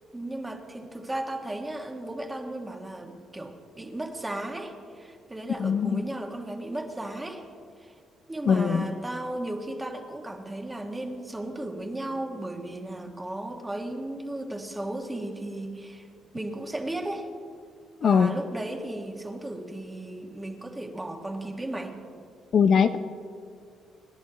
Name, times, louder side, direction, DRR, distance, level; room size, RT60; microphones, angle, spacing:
voice 1, 0.1-7.4 7.8-7.9 8.3-16.1 16.3-17.3 18.0-22.0, right 1 dB, 15° right, 3 dB, 1.7 m, -35 dB
voice 2, 5.6-6.0 8.5-8.8 18.0-18.3 22.5-23.0, left 6 dB, 60° left, 9 dB, 0.5 m, -21 dB
29.0 x 11.0 x 3.0 m, 2.3 s
cardioid pair, 90°, 0 cm